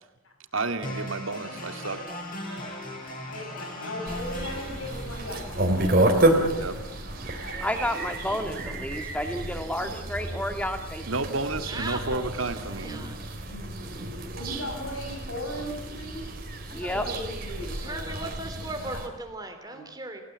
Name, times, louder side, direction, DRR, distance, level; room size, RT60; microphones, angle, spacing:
voice 1, 0.5-2.0 6.5-6.8 11.1-12.9, right 3 dB, 75° right, 8 dB, 2.1 m, -31 dB
sound 1, 0.8-8.8, equal, 40° left, 6.8 m, -40 dB
voice 2, 2.4-2.8 3.2-6.7 7.3-7.7 9.7-10.5 12.7-13.1 13.4-13.7 14.3-16.4 16.7-18.3 18.8-19.0 19.4-19.8, left 1 dB, 80° left, 2 dB, 5.5 m, -39 dB
sound 2, 4.1-19.1, right 1 dB, 45° right, 3.5 m, -30 dB
voice 3, 7.6-11.0 16.7-17.0, left 1 dB, 5° left, 6 dB, 2.0 m, -30 dB
voice 4, 11.7-12.3 12.7-13.2 17.8-20.2, right 2 dB, 20° right, 6 dB, 3.4 m, -37 dB
29.0 x 17.0 x 8.1 m, 0.99 s
head